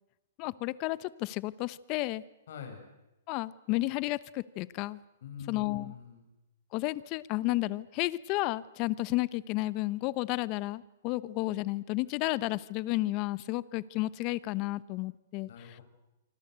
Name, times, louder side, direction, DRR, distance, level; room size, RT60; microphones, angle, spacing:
voice 1, 0.4-2.2 3.3-5.0 5.5-5.9 6.7-15.8, left 19 dB, 30° left, 19 dB, 0.9 m, -32 dB
voice 2, 2.5-2.8 5.2-6.3 15.5-15.8, left 7 dB, 65° left, 5 dB, 7.4 m, -45 dB
25.5 x 25.0 x 8.1 m, 0.95 s
hypercardioid pair, 155°, 0 cm